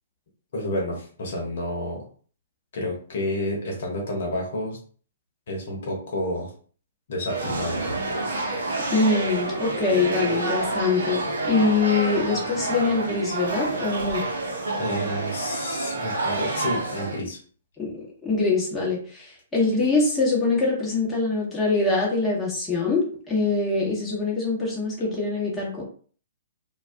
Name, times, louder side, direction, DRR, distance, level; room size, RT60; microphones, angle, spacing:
voice 1, 0.5-2.0 2.7-4.8 5.5-6.5 7.1-7.8 14.8-17.4, left 1 dB, 60° left, -1 dB, 1.0 m, -30 dB
sound 1, 7.3-17.2, right 2 dB, 70° right, 0.7 m, -28 dB
voice 2, 8.9-14.2 17.8-25.8, left 3 dB, 10° left, -5 dB, 1.0 m, -24 dB
2.3 x 2.2 x 2.6 m, 0.43 s
figure-of-eight pair, 120°, 0 cm